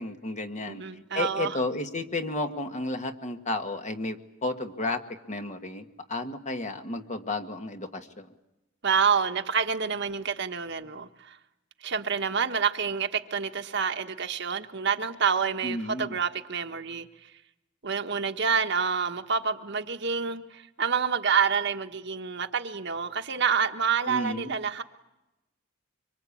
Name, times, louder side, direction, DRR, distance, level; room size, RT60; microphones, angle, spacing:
voice 1, 0.0-0.8 1.1-5.0 5.3-8.3 15.6-16.2 24.1-24.6, left 2 dB, 40° left, 6 dB, 1.7 m, -32 dB
voice 2, 0.7-1.6 8.8-11.4 11.8-17.1 17.8-24.8, right 6 dB, 60° right, 6 dB, 1.4 m, -28 dB
25.0 x 24.5 x 8.6 m, 0.96 s
head